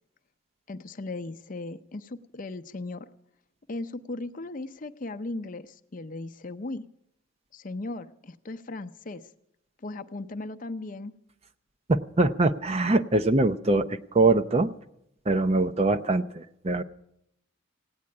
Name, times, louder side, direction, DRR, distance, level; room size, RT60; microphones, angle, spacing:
voice 1, 0.7-3.1 3.7-6.8 7.5-9.2 9.8-11.1, left 2 dB, 40° left, 10 dB, 0.6 m, -37 dB
voice 2, 11.9-14.7 15.3-16.8, right 2 dB, 30° right, 11 dB, 0.5 m, -23 dB
16.5 x 9.6 x 8.6 m, 0.79 s
head